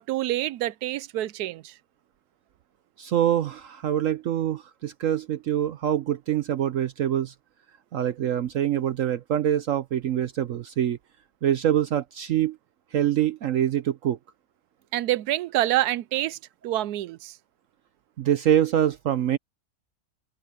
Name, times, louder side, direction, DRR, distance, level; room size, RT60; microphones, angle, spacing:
voice 1, 0.0-1.7 14.9-16.4 16.6-17.4, right 15 dB, 85° right, 1.1 m, -27 dB
voice 2, 3.0-7.3 7.9-11.0 11.4-12.6 12.9-14.2 18.2-19.4, right 10 dB, 65° right, 1.0 m, -25 dB
omnidirectional pair, 1.6 m